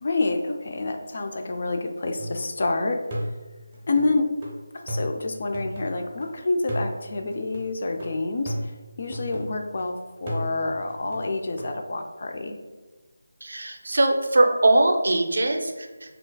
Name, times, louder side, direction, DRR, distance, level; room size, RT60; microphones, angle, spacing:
voice 1, 0.0-3.0 3.9-4.3 4.7-8.7 9.0-12.6, left 3 dB, 45° left, 4 dB, 0.3 m, -27 dB
sound 1, 2.2-2.7 3.1-6.3 6.7-9.8 10.3-11.7, equal, 20° right, 0.6 m, -35 dB
voice 2, 13.4-15.9, right 2 dB, 65° right, 4 dB, 0.4 m, -21 dB
3.7 x 2.3 x 2.2 m, 1.2 s
figure-of-eight pair, 165°, 0 cm